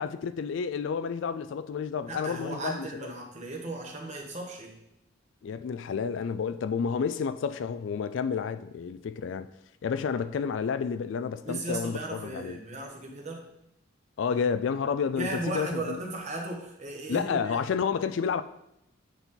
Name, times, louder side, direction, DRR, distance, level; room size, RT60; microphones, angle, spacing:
voice 1, 0.0-3.1 5.4-9.5 9.8-12.6 14.2-16.0 17.1-18.4, left 6 dB, 65° left, 0.3 m, -30 dB
voice 2, 2.1-4.8 11.4-13.5 15.1-17.6, right 2 dB, 35° right, 1.2 m, -36 dB
8.1 x 4.2 x 3.8 m
head